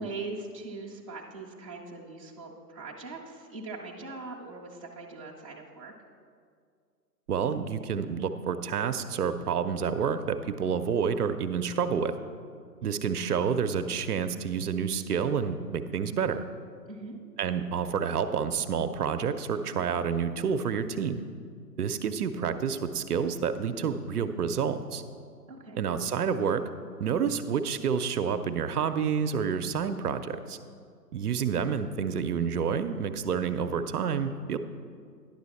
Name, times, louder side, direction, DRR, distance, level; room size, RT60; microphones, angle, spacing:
voice 1, 0.0-5.9 16.9-17.2 25.5-25.8, right 3 dB, 20° right, -5 dB, 0.5 m, -41 dB
voice 2, 7.3-12.1 12.8-16.4 17.4-21.2 21.8-25.0 25.8-26.6 27.0-30.6 31.1-34.6, right 6 dB, 65° right, 9 dB, 0.6 m, -29 dB
10.5 x 6.2 x 4.2 m, 2.1 s
hypercardioid pair, 145°, 49 cm